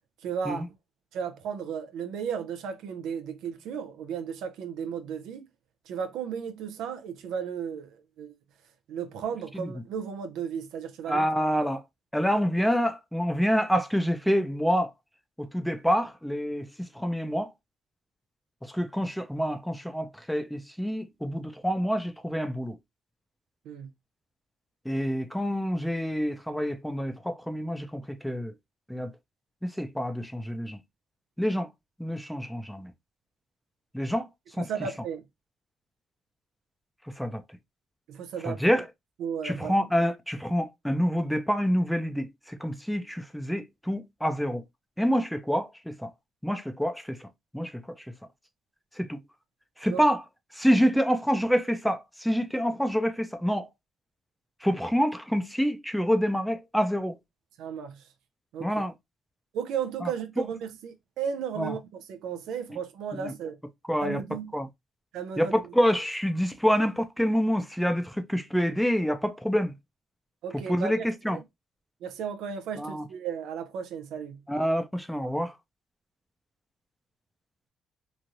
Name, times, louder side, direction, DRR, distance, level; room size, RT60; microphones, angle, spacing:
voice 1, 0.2-0.7 1.1-5.5 5.9-8.3 8.9-11.3 23.7-23.9 34.6-35.2 38.1-38.6 39.2-39.8 49.9-50.0 57.6-58.0 58.5-58.7 59.5-63.6 64.0-64.5 65.1-65.6 70.4-70.9 71.3-71.4 72.0-74.4, right 7 dB, 85° right, 0.5 m, -34 dB
voice 2, 11.1-11.8 12.1-14.9 15.4-16.7 16.9-17.5 18.6-22.8 24.9-28.5 28.9-29.1 29.6-30.8 31.4-31.7 32.0-32.9 33.9-34.3 34.6-34.7 37.2-37.4 38.4-38.9 39.4-44.6 45.0-46.1 46.4-47.3 47.5-47.8 49.0-49.2 49.8-50.2 50.5-53.7 54.6-57.2 58.6-58.9 60.0-60.1 61.6-61.7 63.2-63.3 63.9-64.2 64.5-64.7 65.4-69.7 70.7-71.4 72.8-73.1 74.5-75.5, equal, ahead, 0.5 m, -27 dB
3.0 x 2.4 x 2.6 m
cardioid pair, 90°, 0 cm